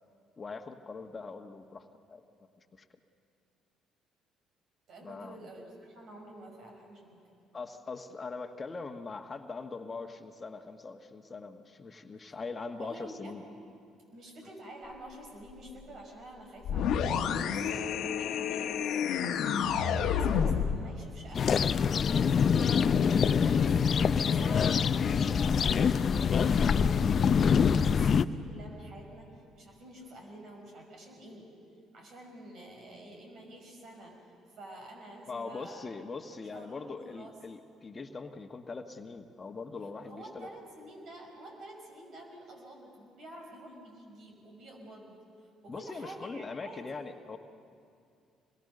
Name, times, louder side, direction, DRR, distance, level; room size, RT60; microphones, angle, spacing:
voice 1, 0.4-2.2 2.7-2.8 5.0-5.4 7.5-13.4 35.3-40.5 45.7-47.4, left 4 dB, 35° left, 6 dB, 1.4 m, -41 dB
voice 2, 4.9-7.4 12.7-13.6 14.1-21.6 22.6-31.5 31.9-34.2 34.6-35.8 36.3-37.3 40.0-47.0, right 1 dB, 60° right, 1 dB, 6.0 m, -49 dB
sound 1, 16.6-20.8, left 7 dB, 65° left, 1.2 m, -29 dB
sound 2, 21.3-28.2, left 6 dB, 50° left, 0.6 m, -25 dB
26.5 x 22.0 x 6.7 m, 2.4 s
hypercardioid pair, 55°, 0 cm